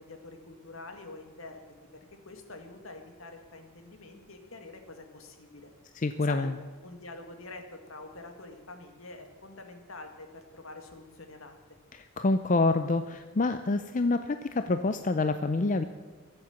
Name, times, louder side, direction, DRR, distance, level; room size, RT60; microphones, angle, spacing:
voice 1, 0.0-1.7 2.3-5.7 6.2-6.5 6.8-11.5, left 2 dB, 70° left, 5 dB, 2.1 m, -46 dB
voice 2, 5.9-6.5 11.9-15.8, left 3 dB, 35° left, 9 dB, 0.5 m, -27 dB
22.5 x 7.8 x 7.2 m, 1.4 s
head